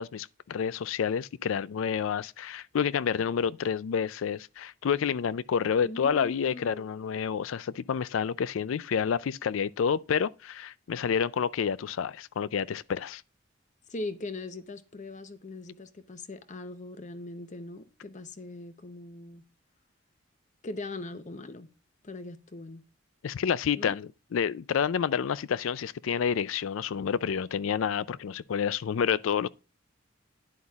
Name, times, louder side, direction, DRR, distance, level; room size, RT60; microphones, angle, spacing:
voice 1, 0.0-13.2 23.2-29.5, left 7 dB, 85° left, 0.4 m, -29 dB
voice 2, 5.8-6.8 13.9-19.4 20.6-21.7 22.0-22.9 23.7-24.0, left 2 dB, 40° left, 0.8 m, -40 dB
10.5 x 8.0 x 2.4 m
head